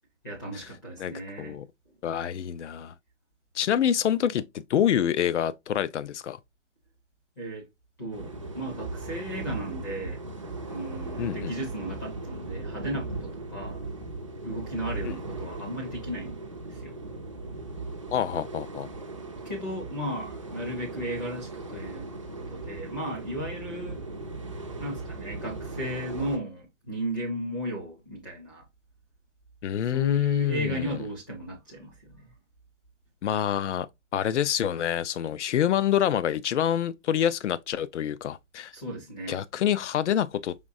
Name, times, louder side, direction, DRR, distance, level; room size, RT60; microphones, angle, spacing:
voice 1, 0.2-1.6 7.4-7.6 8.0-10.2 10.7-13.8 14.4-16.4 16.7-17.0 19.4-22.1 22.5-24.0 24.8-28.6 29.9-32.3 38.7-39.4, equal, 15° left, 0.6 m, -35 dB
voice 2, 1.0-1.6 2.0-2.9 3.5-6.4 11.2-11.5 15.0-15.1 18.1-18.9 29.6-31.0 33.2-33.9 34.1-38.7 39.3-40.7, left 10 dB, 75° left, 0.5 m, -27 dB
sound 1, 8.1-26.4, right 3 dB, 30° right, 0.4 m, -38 dB
5.1 x 3.1 x 2.6 m
hypercardioid pair, 170°, 36 cm